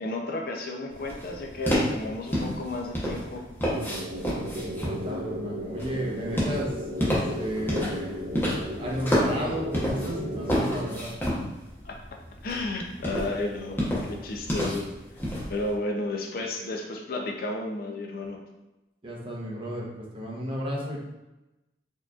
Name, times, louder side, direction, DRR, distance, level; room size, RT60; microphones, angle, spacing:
voice 1, 0.0-3.4 11.8-12.0 12.4-14.9 15.5-18.4, left 2 dB, 55° left, 1 dB, 0.5 m, -32 dB
sound 1, 0.9-15.7, equal, 10° left, 0.8 m, -31 dB
sound 2, 3.6-10.9, equal, 70° right, 0.6 m, -35 dB
voice 2, 4.5-6.7 7.0-8.2 8.8-11.1 19.0-21.0, equal, 30° right, -3 dB, 0.8 m, -33 dB
4.4 x 2.9 x 2.3 m, 0.99 s
head